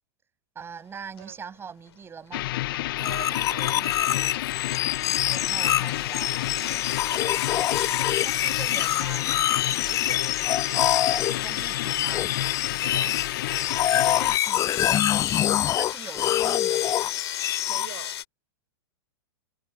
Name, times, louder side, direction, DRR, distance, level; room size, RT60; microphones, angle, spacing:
voice 1, 0.5-2.5 5.3-6.3 8.2-9.3 11.1-12.3 13.9-15.0 15.7-17.0, right 6 dB, 15° right, 6.8 m, -42 dB
sound 1, 1.2-1.3 1.8-2.2 3.4-18.2, left 11 dB, 75° left, 2.5 m, -37 dB
sound 2, 2.3-14.4, left 16 dB, 55° left, 0.7 m, -30 dB
sound 3, 3.0-17.9, left 12 dB, 25° left, 0.6 m, -26 dB
voice 2, 3.0-4.3 6.5-7.4 9.9-10.3 12.7-13.2 17.7-18.2, right 17 dB, 60° right, 4.9 m, -44 dB
hypercardioid pair, 125°, 14 cm